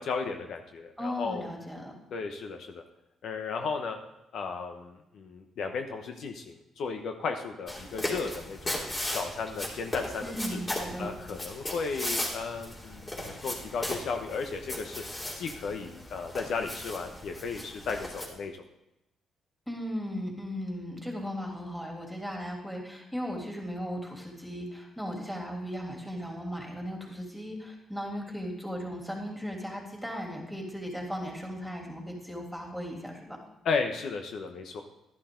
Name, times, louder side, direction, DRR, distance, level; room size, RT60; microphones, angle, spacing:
voice 1, 0.0-1.5 2.1-2.8 3.2-4.0 4.3-8.7 9.1-10.6 11.0-15.0 15.3-18.5 33.6-34.8, left 5 dB, 70° left, 4 dB, 1.0 m, -34 dB
voice 2, 1.0-1.9 10.2-11.1 19.7-33.4, equal, ahead, 0 dB, 3.1 m, -37 dB
sound 1, 7.7-18.3, left 1 dB, 25° left, 3.1 m, -37 dB
11.5 x 11.5 x 3.9 m, 0.91 s
cardioid pair, 90°, 0 cm